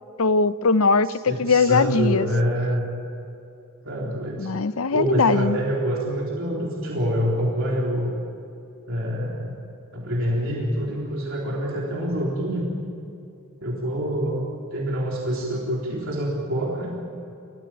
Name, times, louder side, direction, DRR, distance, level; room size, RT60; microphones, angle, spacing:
voice 1, 0.2-2.3 4.4-5.6, left 4 dB, 70° left, 14 dB, 0.7 m, -20 dB
voice 2, 1.3-2.8 3.8-4.5 4.9-8.1 8.9-9.6 9.9-12.7 13.6-14.4 14.7-16.9, equal, 65° right, -3 dB, 3.8 m, -26 dB
29.0 x 15.5 x 8.9 m, 2.7 s
head